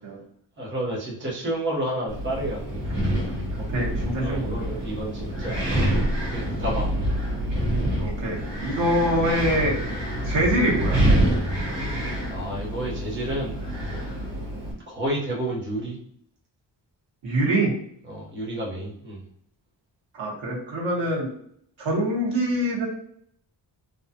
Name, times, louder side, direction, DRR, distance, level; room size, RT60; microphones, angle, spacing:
voice 1, 0.6-2.8 4.2-5.9 6.2-6.9 12.3-13.6 13.9-14.0 14.9-16.0 18.1-19.2, right 1 dB, 25° right, -5 dB, 1.0 m, -30 dB
Wind, 2.1-14.7, right 1 dB, 65° right, 1.4 m, -26 dB
voice 2, 3.7-4.7 8.0-9.8 10.2-11.0 17.2-17.7 20.1-21.3 21.8-22.9, right 1 dB, 85° right, -4 dB, 1.4 m, -24 dB
4.1 x 2.4 x 2.8 m, 0.65 s
wide cardioid pair, 180°, 45 cm